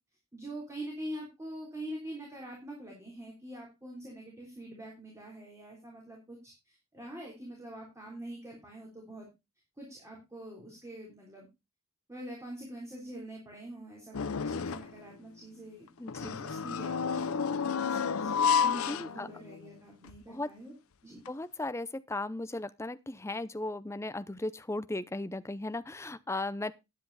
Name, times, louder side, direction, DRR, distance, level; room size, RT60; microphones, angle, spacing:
voice 1, 0.3-9.3 9.8-11.5 12.1-15.9 16.2-18.3 18.6-20.7 21.0-21.2, right 1 dB, 15° right, 3.5 m, -45 dB
sound 1, 14.1-15.0 16.1-19.7 20.1-20.2 21.3-21.4, left 6 dB, 85° left, 0.6 m, -31 dB
voice 2, 16.0-16.3 18.6-19.3 20.3-20.5 21.3-26.7, left 2 dB, 15° left, 0.6 m, -36 dB
10.0 x 10.0 x 4.1 m
head